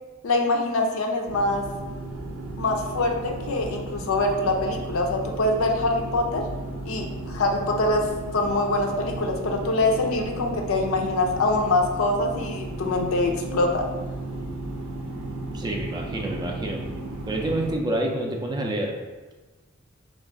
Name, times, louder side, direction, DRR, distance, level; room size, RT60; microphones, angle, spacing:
voice 1, 0.2-1.6 2.6-6.4 6.8-8.1 8.3-13.9, left 2 dB, 70° left, 2 dB, 0.5 m, -24 dB
sound 1, 1.3-17.7, right 2 dB, 80° right, 0.6 m, -34 dB
voice 2, 15.5-16.8 17.2-19.0, right 1 dB, 20° right, 1 dB, 0.4 m, -28 dB
3.8 x 2.4 x 3.5 m, 1.2 s
head